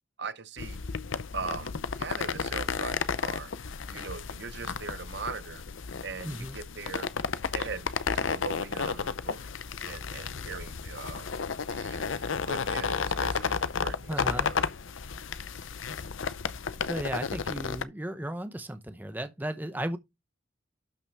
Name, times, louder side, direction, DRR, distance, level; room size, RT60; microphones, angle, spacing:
voice 1, 0.2-0.8 1.3-3.5 3.9-5.6 6.0-7.1 7.5-7.9 8.1-9.5 9.8-11.3 11.7-14.1 14.4-14.6, right 4 dB, 55° right, 0.8 m, -40 dB
sound 1, 0.6-17.8, left 5 dB, 70° left, 0.6 m, -33 dB
voice 2, 6.2-6.6 14.1-14.5 16.8-20.0, right 1 dB, 10° right, 0.7 m, -35 dB
12.0 x 5.8 x 3.4 m
head